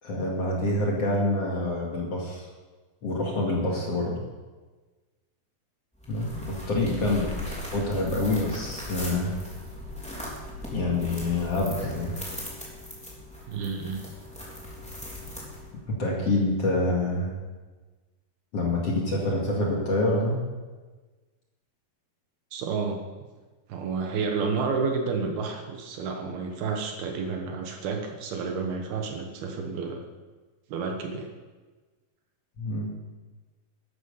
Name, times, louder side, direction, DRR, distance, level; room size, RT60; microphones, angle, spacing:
voice 1, 0.0-2.5 3.0-4.2 6.1-7.2 7.7-9.3 10.7-12.1 15.9-17.3 18.5-20.4 32.6-32.9, left 2 dB, 45° left, -3 dB, 2.6 m, -26 dB
sound 1, 6.0-15.9, left 1 dB, ahead, 2.5 m, -39 dB
voice 2, 6.7-7.1 13.5-14.1 22.5-23.0 23.7-30.0 30.7-31.3, right 5 dB, 70° right, 3 dB, 3.0 m, -30 dB
13.0 x 12.0 x 5.7 m, 1.3 s
omnidirectional pair, 4.9 m